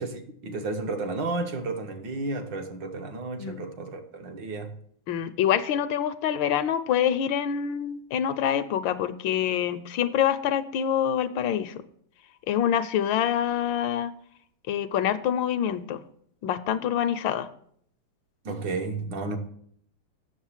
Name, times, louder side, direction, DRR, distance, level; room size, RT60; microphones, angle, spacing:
voice 1, 0.0-4.7 18.4-19.4, right 3 dB, 65° right, 5 dB, 1.6 m, -32 dB
voice 2, 5.1-11.7 12.5-14.1 14.7-16.0 16.4-17.5, left 9 dB, 75° left, 12 dB, 1.3 m, -26 dB
8.1 x 6.7 x 7.2 m, 0.66 s
omnidirectional pair, 2.2 m